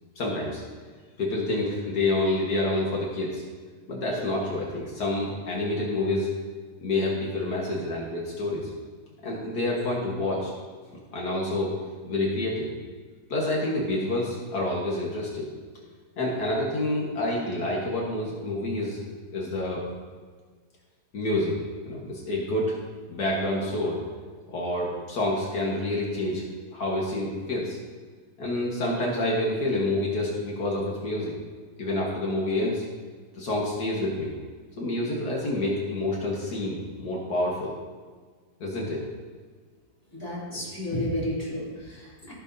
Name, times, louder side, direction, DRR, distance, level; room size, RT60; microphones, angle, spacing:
voice 1, 0.2-0.6 1.2-3.4 3.9-6.3 6.8-8.7 9.2-10.5 11.1-11.8 12.1-12.7 13.3-15.5 16.2-19.0 19.3-19.8 21.1-21.6 21.9-22.8 23.1-24.0 24.5-26.4 26.7-27.8 28.4-31.4 31.8-32.8 33.4-34.3 34.8-37.7 38.6-39.1 40.5-40.7 40.9-41.0, left 1 dB, 70° left, -3 dB, 2.0 m, -28 dB
voice 2, 40.1-42.3, left 1 dB, 10° left, -8 dB, 3.0 m, -32 dB
15.0 x 6.5 x 2.7 m, 1.5 s
omnidirectional pair, 1.8 m